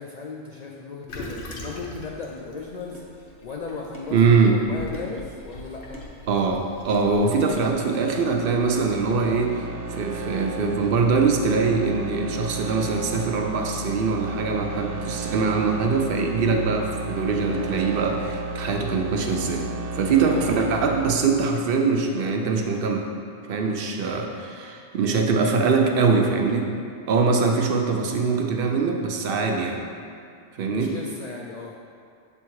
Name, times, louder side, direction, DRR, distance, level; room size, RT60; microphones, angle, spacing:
voice 1, 0.0-6.0 30.6-31.8, left 4 dB, 55° left, -1 dB, 0.4 m, -36 dB
Toilet flush, 1.1-7.7, left 1 dB, 70° left, 1.1 m, -42 dB
sound 1, 2.9-3.1 3.9-4.2 4.9-5.2 5.9-6.1 6.9-7.1 7.9-8.2 8.9-9.1 9.9-10.1, right 1 dB, 15° right, 0.6 m, -43 dB
voice 2, 4.1-4.6 6.3-23.1 23.5-26.7 27.1-29.8 30.6-30.9, right 4 dB, 60° right, 2 dB, 0.8 m, -23 dB
sound 2, 7.6-21.0, right 2 dB, 90° right, 0.9 m, -33 dB
7.3 x 3.5 x 4.6 m, 2.3 s
omnidirectional pair, 1.2 m